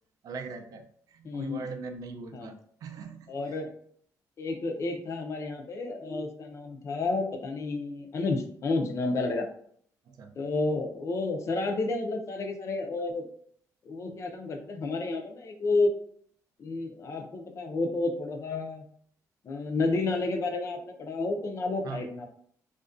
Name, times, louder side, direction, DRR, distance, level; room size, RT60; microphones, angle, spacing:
voice 1, 0.2-3.6 10.1-10.4 21.8-22.1, right 4 dB, 65° right, 5 dB, 0.4 m, -41 dB
voice 2, 1.2-1.7 2.3-2.5 3.3-3.7 4.4-9.5 10.4-13.3 13.9-15.9 16.6-18.8 19.4-22.3, left 3 dB, 45° left, 4 dB, 0.4 m, -30 dB
2.4 x 2.2 x 2.4 m, 0.62 s
cardioid pair, 115°, 7 cm